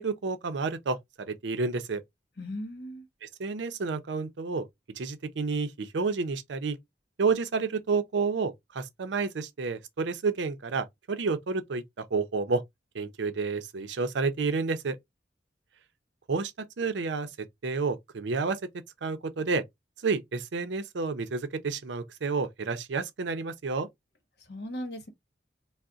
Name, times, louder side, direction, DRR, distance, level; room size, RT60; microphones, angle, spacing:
voice 1, 0.0-2.0 3.2-4.7 5.0-6.8 7.2-12.6 12.9-15.0 16.3-17.3 17.6-18.6 19.0-19.6 20.0-23.9, right 4 dB, 80° right, 0.5 m, -30 dB
voice 2, 2.4-3.0 24.4-25.1, left 1 dB, 65° left, 0.9 m, -37 dB
2.4 x 2.0 x 3.8 m
head